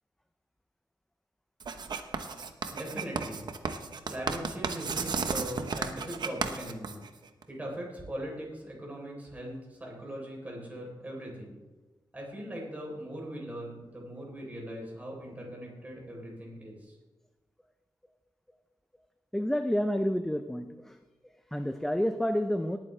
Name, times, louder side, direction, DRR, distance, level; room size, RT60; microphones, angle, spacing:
Writing, 1.6-7.4, right 5 dB, 60° right, 0.9 m, -34 dB
voice 1, 2.7-3.5 4.1-7.0 7.5-11.6 12.1-17.0, right 1 dB, 20° right, -2 dB, 3.8 m, -40 dB
voice 2, 19.3-21.0 21.2-22.8, equal, 5° left, 7 dB, 0.5 m, -29 dB
19.0 x 9.1 x 3.3 m, 1.2 s
wide cardioid pair, 135°, 8 cm